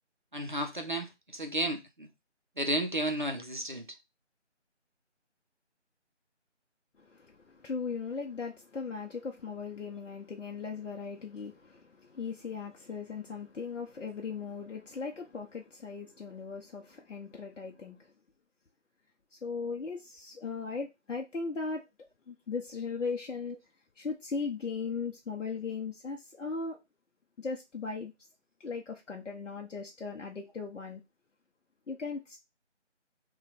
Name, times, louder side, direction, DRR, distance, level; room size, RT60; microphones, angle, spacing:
voice 1, 0.3-2.1 2.6-3.9, right 1 dB, 45° right, 0.4 m, -33 dB
voice 2, 7.0-18.1 19.3-21.9 22.3-23.6 24.0-26.8 27.4-28.1 28.6-31.0 31.9-32.4, left 5 dB, 80° left, 0.7 m, -38 dB
3.1 x 2.2 x 4.0 m
figure-of-eight pair, 170°, 36 cm